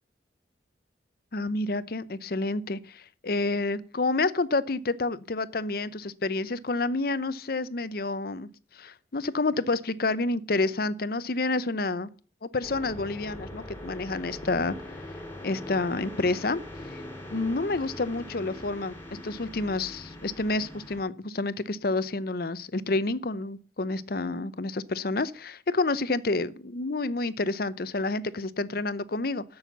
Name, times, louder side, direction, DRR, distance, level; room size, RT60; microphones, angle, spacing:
voice 1, 1.3-12.1 12.4-15.0 15.4-16.6 16.9-17.0 17.3-18.9 19.2-29.4, left 3 dB, 55° left, 0.7 m, -29 dB
sound 1, 12.6-21.0, left 1 dB, 15° left, 2.8 m, -42 dB
13.0 x 6.4 x 7.0 m
head